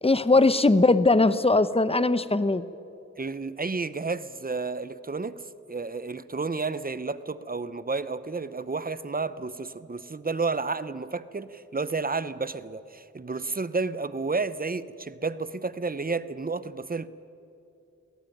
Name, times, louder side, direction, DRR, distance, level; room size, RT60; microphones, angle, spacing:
voice 1, 0.0-2.7, left 2 dB, 20° left, 13 dB, 0.9 m, -20 dB
voice 2, 3.2-5.4 5.7-17.1, right 4 dB, 30° right, 15 dB, 0.8 m, -31 dB
24.0 x 18.0 x 9.2 m, 2.8 s
wide cardioid pair, 75°, 30 cm